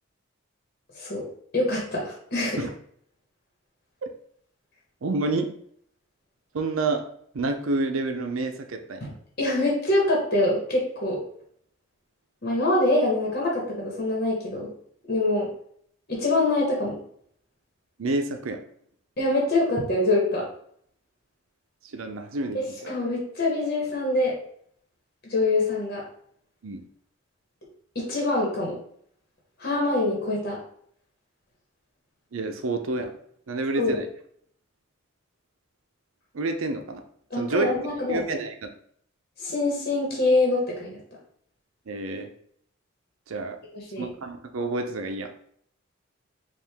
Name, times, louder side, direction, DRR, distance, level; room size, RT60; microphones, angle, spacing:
voice 1, 1.5-2.6 9.0-9.1 9.4-11.2 12.4-14.7 15.1-15.5 16.1-17.0 19.2-20.5 22.5-24.3 25.3-26.0 27.9-28.8 29.6-30.6 33.7-34.0 37.3-38.2 39.4-41.0 43.7-44.1, left 2 dB, 50° left, -2 dB, 1.2 m, -24 dB
voice 2, 5.0-5.5 6.5-7.0 7.3-9.1 18.0-18.6 21.9-22.6 26.6-26.8 32.3-33.1 33.5-34.1 36.3-37.0 37.4-37.7 38.1-38.7 41.9-42.3 43.3-43.6 44.0-45.3, right 3 dB, 80° right, 6 dB, 0.6 m, -28 dB
4.7 x 2.5 x 3.5 m, 0.65 s
head